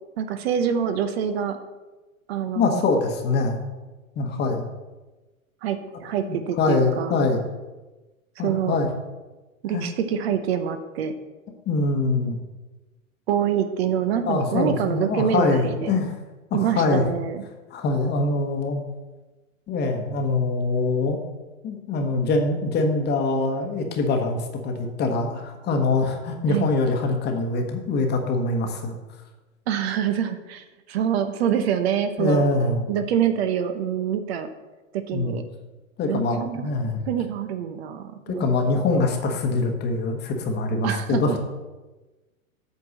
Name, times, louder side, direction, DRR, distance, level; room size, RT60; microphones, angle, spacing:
voice 1, 0.2-1.6 2.3-2.9 5.6-7.2 8.4-8.8 9.6-11.1 13.3-16.0 16.5-17.4 26.5-26.7 29.7-32.4 32.9-34.5 34.9-35.4 36.1-36.7 37.1-38.5 40.8-41.2, right 9 dB, 50° right, 9 dB, 0.8 m, -26 dB
voice 2, 2.5-3.6 4.2-4.6 6.2-7.5 8.4-8.9 9.7-9.8 11.7-12.4 14.3-16.1 16.5-17.0 17.7-18.8 19.7-21.2 21.6-28.9 32.2-32.8 35.1-35.3 36.0-37.0 38.3-41.4, left 3 dB, 25° left, 4 dB, 1.2 m, -24 dB
8.3 x 4.5 x 6.5 m, 1.2 s
figure-of-eight pair, 110°, 41 cm